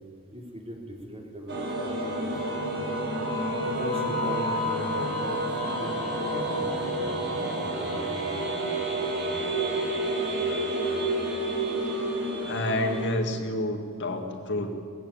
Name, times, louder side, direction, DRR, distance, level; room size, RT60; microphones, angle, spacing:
voice 1, 0.3-3.0 3.6-8.6, right 1 dB, 25° right, 0 dB, 3.6 m, -40 dB
sound 1, 1.5-13.1, right 1 dB, 50° right, 4.1 m, -29 dB
voice 2, 12.4-14.7, left 1 dB, 55° left, 3 dB, 2.1 m, -29 dB
19.5 x 16.0 x 8.8 m, 2.4 s
head